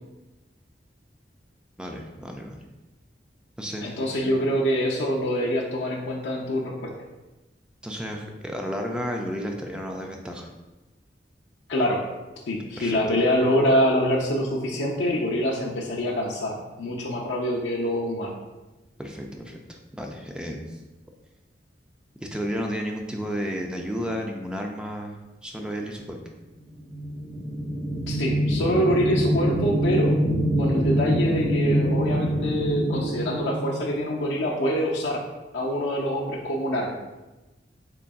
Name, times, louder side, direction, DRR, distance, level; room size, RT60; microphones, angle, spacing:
voice 1, 1.8-2.6 3.6-4.0 4.2-4.5 7.8-10.5 12.8-13.0 19.0-20.8 22.2-26.2, equal, 5° right, 1 dB, 0.3 m, -32 dB
voice 2, 3.8-6.9 11.7-12.0 12.5-18.3 28.1-30.2 30.6-35.2 35.5-37.0, equal, 85° left, -3 dB, 0.5 m, -25 dB
sound 1, 26.8-34.4, equal, 20° right, 1.4 m, -25 dB
3.8 x 3.4 x 2.3 m, 1.1 s
head